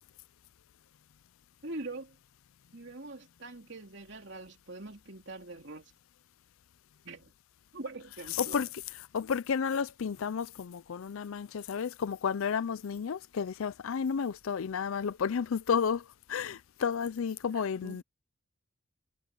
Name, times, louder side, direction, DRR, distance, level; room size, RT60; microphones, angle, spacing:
voice 1, 1.6-2.2 2.7-5.9 7.0-7.3 7.7-8.6 17.5-18.0, right 2 dB, 55° right, 3.2 m, -43 dB
voice 2, 8.1-18.0, left 6 dB, 80° left, 0.4 m, -32 dB
head